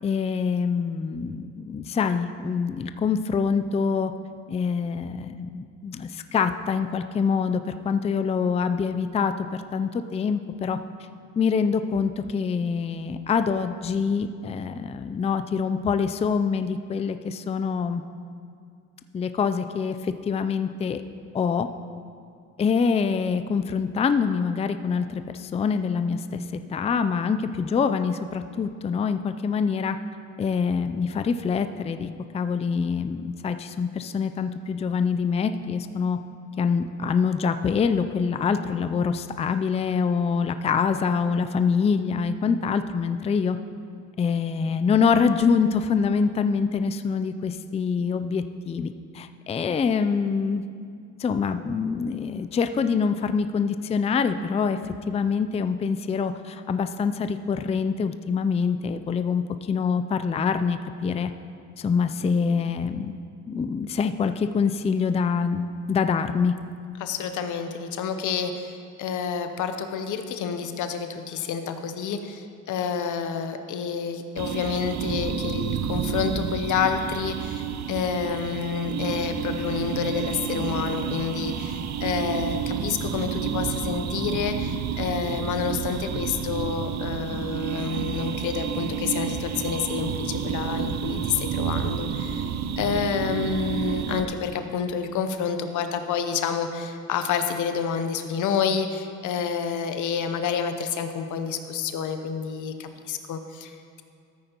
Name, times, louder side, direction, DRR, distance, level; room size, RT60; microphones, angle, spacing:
voice 1, 0.0-4.1 4.5-10.8 11.4-18.0 19.1-21.0 21.3-21.7 22.6-30.0 30.4-32.1 32.3-36.2 36.6-43.6 44.2-50.6 51.2-61.3 61.8-63.2 63.5-66.5, left 5 dB, 20° left, 9 dB, 0.4 m, -25 dB
voice 2, 67.0-92.5 92.8-104.0, left 6 dB, 80° left, 7 dB, 0.8 m, -29 dB
sound 1, 74.4-94.2, right 8 dB, 60° right, 0.7 m, -30 dB
13.5 x 8.9 x 2.9 m, 2.3 s
cardioid pair, 90°, 30 cm